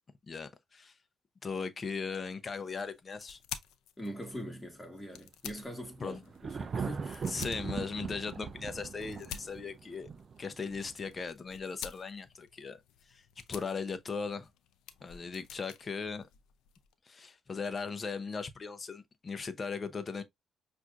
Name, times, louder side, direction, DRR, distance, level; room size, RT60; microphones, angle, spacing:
voice 1, 0.3-0.9 1.4-3.4 6.0-6.2 7.3-10.1 10.4-12.8 13.1-13.2 13.5-14.5 15.0-16.3 17.1-20.2, left 5 dB, 35° left, 0.7 m, -38 dB
sound 1, 2.4-16.9, left 10 dB, 90° left, 0.5 m, -50 dB
voice 2, 4.0-7.5, equal, 10° left, 1.5 m, -43 dB
Thunder, 5.8-11.2, right 5 dB, 45° right, 0.4 m, -40 dB
5.9 x 2.5 x 2.4 m
cardioid pair, 90°, 0 cm